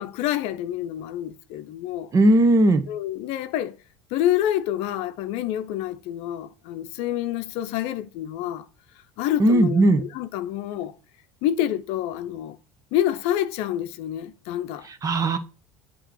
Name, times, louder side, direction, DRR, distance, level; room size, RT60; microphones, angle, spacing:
voice 1, 0.0-2.1 2.9-3.8 4.1-8.7 9.2-10.9 11.4-12.6 12.9-14.9, left 12 dB, 60° left, 0.7 m, -27 dB
voice 2, 2.1-2.8 9.4-10.0 15.0-15.4, right 1 dB, 30° right, 1.2 m, -17 dB
8.0 x 3.2 x 6.2 m
hypercardioid pair, 80°, 11 cm